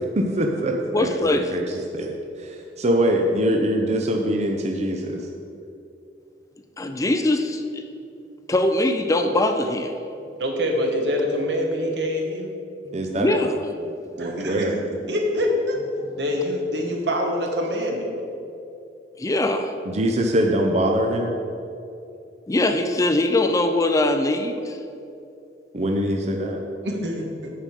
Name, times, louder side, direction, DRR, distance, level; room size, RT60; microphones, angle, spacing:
voice 1, 0.1-1.6 1.9-2.1 2.4-5.2 12.9-13.3 14.2-14.8 19.9-21.4 25.7-26.6, right 1 dB, 40° right, 2 dB, 0.6 m, -23 dB
voice 2, 0.9-1.6 6.8-7.8 8.5-9.9 13.2-13.9 16.0-16.2 19.2-19.8 22.5-24.8, left 2 dB, 20° left, 7 dB, 0.4 m, -22 dB
voice 3, 10.4-12.5 14.2-15.8 16.2-18.1 26.8-27.5, left 1 dB, 70° right, 2 dB, 1.3 m, -25 dB
8.7 x 4.9 x 6.8 m, 2.7 s
head